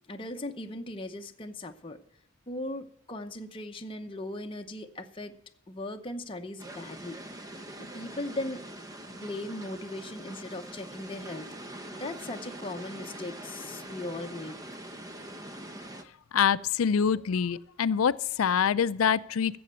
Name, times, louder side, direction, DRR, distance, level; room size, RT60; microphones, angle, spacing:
voice 1, 0.1-2.0 2.5-5.3 5.7-7.2 7.8-8.6 9.1-14.6, left 1 dB, 25° left, 4 dB, 0.8 m, -38 dB
sound 1, 6.6-16.0, right 1 dB, 15° right, 0.7 m, -43 dB
voice 2, 16.3-19.6, left 7 dB, 90° left, 17 dB, 0.4 m, -25 dB
13.5 x 7.8 x 7.6 m, 0.77 s
head